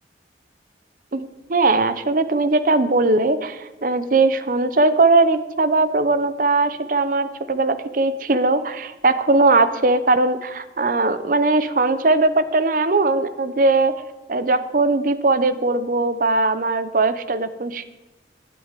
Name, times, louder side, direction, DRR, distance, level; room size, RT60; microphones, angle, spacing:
voice 1, 1.1-13.9 14.3-17.8, right 3 dB, 50° right, 12 dB, 0.7 m, -19 dB
11.5 x 6.3 x 9.2 m, 1.1 s
head